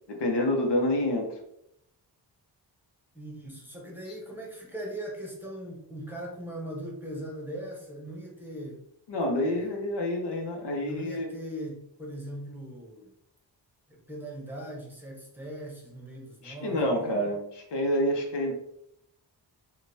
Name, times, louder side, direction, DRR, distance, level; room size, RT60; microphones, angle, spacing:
voice 1, 0.1-1.3 9.1-11.3 16.4-18.5, left 1 dB, 70° left, 2 dB, 0.8 m, -28 dB
voice 2, 3.1-8.8 9.4-9.7 10.8-13.1 13.9-17.3, right 1 dB, 5° right, -3 dB, 0.9 m, -40 dB
5.0 x 2.2 x 2.7 m, 0.77 s
wide cardioid pair, 130°, 43 cm